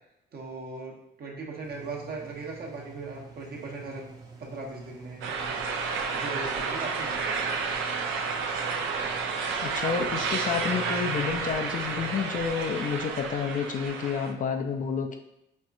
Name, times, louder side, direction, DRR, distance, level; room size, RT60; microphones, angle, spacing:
voice 1, 0.3-4.1 4.4-5.6 6.1-7.3, right 3 dB, 50° right, -1 dB, 0.8 m, -39 dB
sound 1, 1.6-12.8, right 4 dB, 20° right, 0.6 m, -46 dB
sound 2, 5.2-14.3, right 5 dB, 80° right, 0.5 m, -31 dB
voice 2, 9.6-15.2, left 6 dB, 40° left, 4 dB, 0.4 m, -30 dB
4.2 x 2.4 x 2.4 m, 0.85 s
cardioid pair, 90°, 20 cm